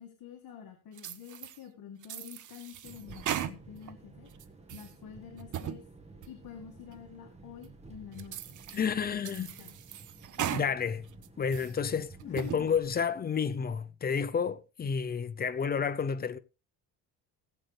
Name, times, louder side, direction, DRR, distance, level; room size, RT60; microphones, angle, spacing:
voice 1, 0.0-4.3 4.7-5.8 6.3-9.2 9.6-9.8 12.2-12.7, left 9 dB, 55° left, 2.1 m, -48 dB
sound 1, 1.0-1.6 2.0-3.9 4.3-4.9 5.4-5.8 6.2-6.3 6.9-7.0 7.6-7.7 8.2-8.9 9.2-10.7 11.1-11.7 12.2-12.6, right 10 dB, 45° right, 0.9 m, -38 dB
sound 2, 2.8-12.9, right 3 dB, 15° right, 1.5 m, -52 dB
voice 2, 8.8-9.5 10.4-11.1 11.4-16.4, left 6 dB, 20° left, 0.6 m, -30 dB
18.5 x 7.8 x 3.4 m
cardioid pair, 150°, 41 cm